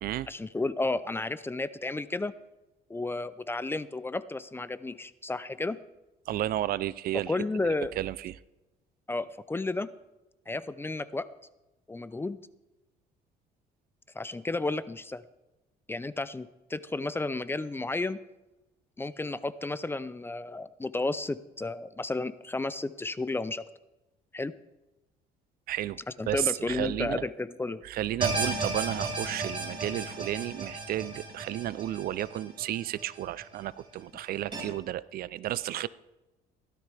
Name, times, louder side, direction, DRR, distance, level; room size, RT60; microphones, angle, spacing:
voice 1, 0.3-2.3 2.9-5.8 7.1-7.9 9.1-9.9 10.5-11.3 11.9-12.4 14.1-15.2 15.9-18.2 19.0-23.7 24.3-24.5 26.2-27.8, left 2 dB, 15° left, 15 dB, 0.5 m, -32 dB
voice 2, 6.3-7.4 8.0-8.4 25.7-26.0 26.3-27.2 27.8-35.9, right 13 dB, 60° right, 18 dB, 0.5 m, -32 dB
sound 1, 28.2-33.4 33.8-33.9 34.5-34.6, right 3 dB, 30° right, 4.7 m, -34 dB
16.5 x 12.5 x 3.4 m, 1.0 s
cardioid pair, 110°, 17 cm